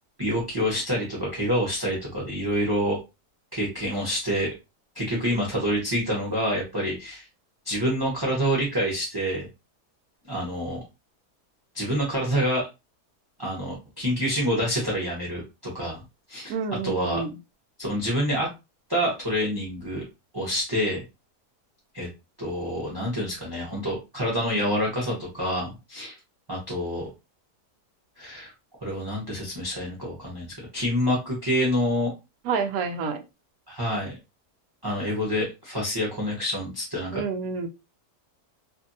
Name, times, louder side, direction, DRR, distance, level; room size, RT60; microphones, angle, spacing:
voice 1, 0.2-3.0 3.5-4.5 4.9-7.3 7.6-9.5 10.3-10.8 11.7-12.7 13.4-16.0 16.3-16.6 16.8-17.2 17.8-18.5 18.9-20.0 20.3-21.0 21.9-22.1 22.4-26.1 26.5-27.1 28.2-28.5 28.8-32.1 33.7-34.1 34.8-37.2, equal, 20° right, -4 dB, 0.6 m, -27 dB
voice 2, 16.5-17.3 32.5-33.2 37.1-37.7, right 5 dB, 70° right, 7 dB, 0.9 m, -28 dB
2.6 x 2.5 x 2.6 m, 0.25 s
omnidirectional pair, 1.7 m